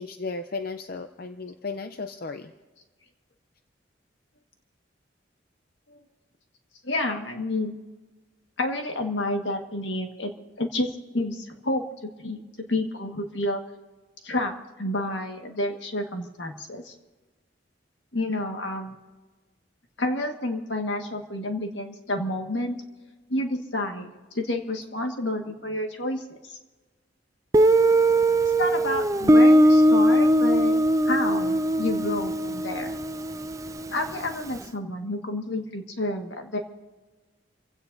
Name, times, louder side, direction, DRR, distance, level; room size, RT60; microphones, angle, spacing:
voice 1, 0.0-2.5, left 4 dB, 50° left, 8 dB, 0.6 m, -35 dB
voice 2, 6.8-7.7 8.6-10.3 10.6-13.6 14.2-14.5 14.8-16.9 18.1-19.0 20.0-22.8 23.3-26.6 28.5-30.8 31.1-33.0 33.9-36.6, left 1 dB, 75° left, 3 dB, 1.7 m, -29 dB
Guitar, 27.5-34.2, right 1 dB, 20° right, 0.4 m, -20 dB
30.0 x 16.5 x 2.7 m, 1.3 s
head